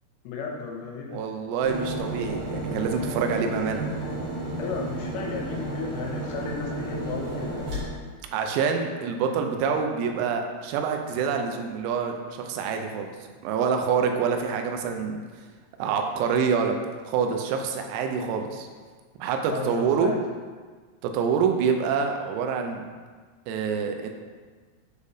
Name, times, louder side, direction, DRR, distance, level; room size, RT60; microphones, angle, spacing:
voice 1, 0.2-1.2 4.6-7.7 19.5-20.2, left 5 dB, 80° left, 0 dB, 3.0 m, -34 dB
voice 2, 1.1-3.8 8.3-13.1 13.4-15.2 15.8-16.7 17.1-18.7 19.2-20.1 21.0-22.8 23.5-24.1, right 6 dB, 90° right, 4 dB, 3.4 m, -26 dB
sound 1, 1.6-7.8, right 2 dB, 50° right, 1.9 m, -32 dB
8.4 x 4.9 x 2.7 m, 1.5 s
omnidirectional pair, 5.9 m